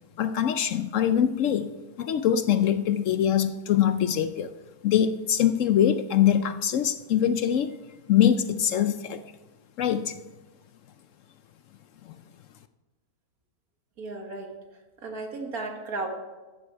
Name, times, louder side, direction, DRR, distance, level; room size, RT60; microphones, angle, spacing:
voice 1, 0.2-1.7 2.0-4.5 4.8-7.7 8.1-9.2 9.8-10.1 12.1-12.2, left 9 dB, 65° left, 11 dB, 0.9 m, -23 dB
voice 2, 14.0-14.5 15.0-16.1, right 3 dB, 75° right, 2 dB, 2.2 m, -34 dB
14.0 x 9.9 x 4.6 m, 1.2 s
omnidirectional pair, 1.6 m